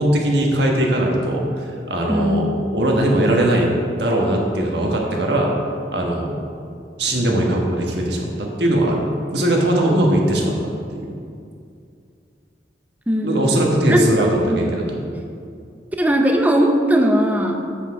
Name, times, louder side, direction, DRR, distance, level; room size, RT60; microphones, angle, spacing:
voice 1, 0.0-2.5 2.7-5.5 5.9-6.3 7.0-9.1 9.3-11.1 13.2-15.0, right 1 dB, 70° right, 0 dB, 1.4 m, -20 dB
voice 2, 2.1-2.5 13.1-13.5 13.9-14.9 16.0-17.6, equal, 10° right, 3 dB, 0.6 m, -19 dB
8.2 x 6.0 x 4.7 m, 2.4 s
head